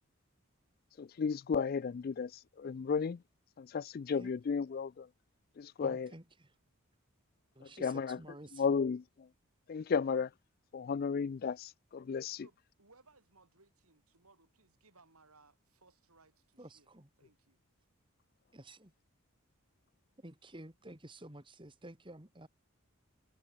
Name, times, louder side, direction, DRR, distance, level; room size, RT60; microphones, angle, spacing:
voice 1, 1.0-3.2 3.6-5.1 5.6-6.1 7.8-9.3 9.7-10.3 10.7-12.5, left 5 dB, 40° left, 0.3 m, -34 dB
voice 2, 5.8-6.6 7.5-8.8 16.6-17.1 18.5-18.9 20.2-22.5, right 1 dB, 20° right, 2.3 m, -52 dB
voice 3, 12.3-17.6, right 3 dB, 80° right, 5.6 m, -65 dB
head